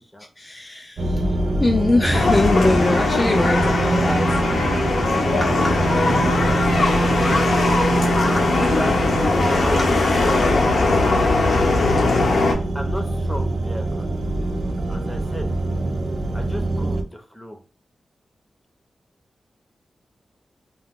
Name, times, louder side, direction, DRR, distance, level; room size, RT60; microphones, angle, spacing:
voice 1, 0.4-5.8 8.4-8.7 9.8-9.9, left 2 dB, 30° left, 0.4 m, -24 dB
sound 1, 1.0-17.0, right 2 dB, 75° right, 0.4 m, -24 dB
sound 2, 2.1-12.5, left 3 dB, 80° left, 0.6 m, -20 dB
voice 2, 8.0-9.9 10.2-10.9 12.7-14.1 14.9-15.5 16.3-17.6, equal, 5° left, 0.8 m, -33 dB
2.3 x 2.3 x 3.5 m
cardioid pair, 70°, 0 cm